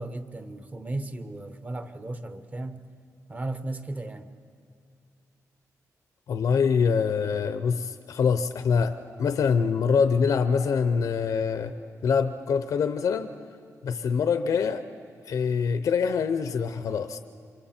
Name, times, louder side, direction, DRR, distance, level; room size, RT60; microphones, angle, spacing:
voice 1, 0.0-2.8 3.3-4.3, right 2 dB, 25° right, 10 dB, 0.9 m, -35 dB
voice 2, 6.3-11.7 12.0-13.3 13.8-14.8 15.3-17.2, left 6 dB, 70° left, 9 dB, 0.7 m, -24 dB
27.5 x 24.0 x 4.4 m, 2.4 s
wide cardioid pair, 125°, 6 cm